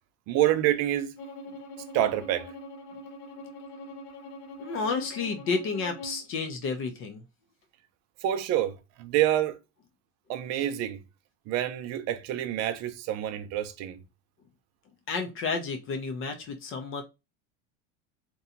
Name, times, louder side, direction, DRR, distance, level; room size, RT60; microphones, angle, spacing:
voice 1, 0.3-1.2 1.9-2.5 8.2-9.6 10.3-11.0 11.5-14.0, right 12 dB, 45° right, 0.5 m, -27 dB
Bowed string instrument, 1.2-6.3, left 1 dB, 80° left, 0.7 m, -43 dB
voice 2, 4.6-7.2 15.1-17.0, left 4 dB, 35° left, 0.4 m, -31 dB
2.8 x 2.2 x 2.5 m
supercardioid pair, 130°, 37 cm